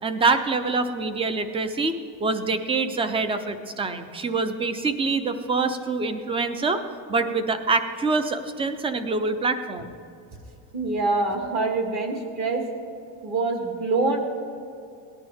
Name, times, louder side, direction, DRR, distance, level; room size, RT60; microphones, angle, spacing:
voice 1, 0.0-6.8 7.1-9.9, right 3 dB, 15° right, 10 dB, 0.4 m, -25 dB
voice 2, 10.7-12.6 13.2-14.2, right 3 dB, 40° right, 3 dB, 1.8 m, -25 dB
18.0 x 10.5 x 3.5 m, 2.6 s
cardioid pair, 165°, 40 cm